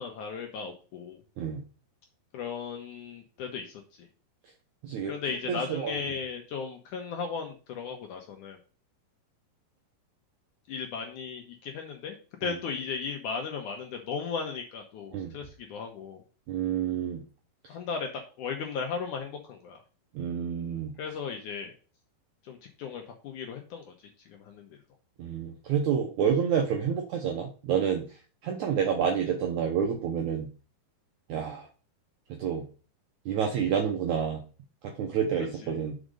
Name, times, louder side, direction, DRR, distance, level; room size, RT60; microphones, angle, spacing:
voice 1, 0.0-1.2 2.3-4.1 5.1-8.6 10.7-16.2 17.7-19.8 21.0-21.7 22.4-23.9 24.3-24.8 35.6-35.8, left 5 dB, 70° left, 3 dB, 2.0 m, -36 dB
voice 2, 5.5-6.0 15.1-15.3 16.5-17.2 20.1-20.9 25.2-28.0 28.4-30.5 31.3-31.7 32.3-32.6 33.2-34.4 34.8-35.9, right 7 dB, 75° right, 2 dB, 1.8 m, -28 dB
6.2 x 5.1 x 5.2 m, 0.36 s
omnidirectional pair, 4.5 m